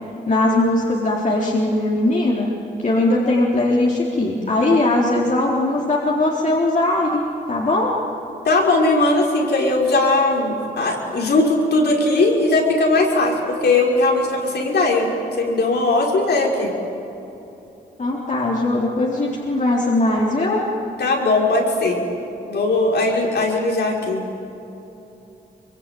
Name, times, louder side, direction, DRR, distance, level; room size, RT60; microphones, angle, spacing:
voice 1, 0.3-2.5 2.8-7.2 7.5-8.0 18.0-20.6, left 2 dB, 45° left, -4 dB, 4.0 m, -19 dB
voice 2, 8.4-15.1 15.4-16.7 21.0-22.0 22.5-24.2, left 2 dB, 70° left, -1 dB, 5.7 m, -19 dB
24.5 x 23.5 x 9.4 m, 3.0 s
cardioid pair, 65°, 18 cm